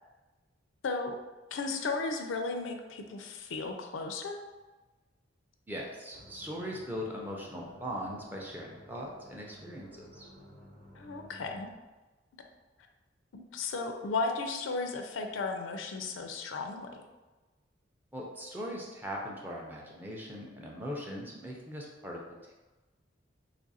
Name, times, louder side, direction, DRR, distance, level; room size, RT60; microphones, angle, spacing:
voice 1, 0.8-1.2 1.5-4.4 11.0-11.7 13.3-16.9, left 3 dB, 90° left, 4 dB, 0.4 m, -35 dB
voice 2, 5.7-10.3 18.1-22.2, equal, 10° right, -2 dB, 0.5 m, -40 dB
sound 1, 6.1-11.8, equal, 45° right, 0.8 m, -54 dB
3.1 x 2.5 x 4.0 m, 1.2 s
head